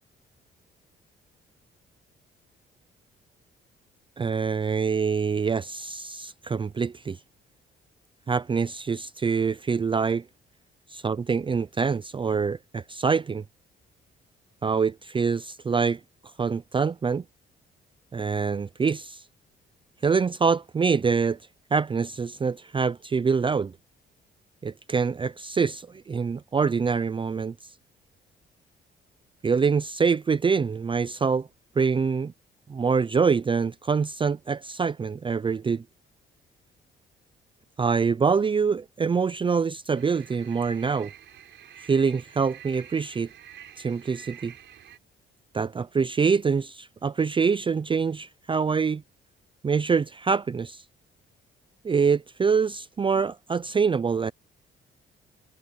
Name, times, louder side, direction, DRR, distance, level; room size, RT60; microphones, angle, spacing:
voice 1, 4.2-7.2 8.3-10.2 10.9-13.4 14.6-16.0 16.4-17.2 18.1-19.2 20.0-21.4 21.7-23.7 24.6-27.5 29.4-31.5 31.8-32.3 32.7-35.8 37.8-41.1 41.9-43.3 43.8-44.5 45.5-49.0 49.6-50.8 51.8-54.3, right 5 dB, 25° right, 0.5 m, -25 dB
sound 1, 39.9-45.0, right 10 dB, 65° right, 4.4 m, -48 dB
cardioid pair, 90°, 20 cm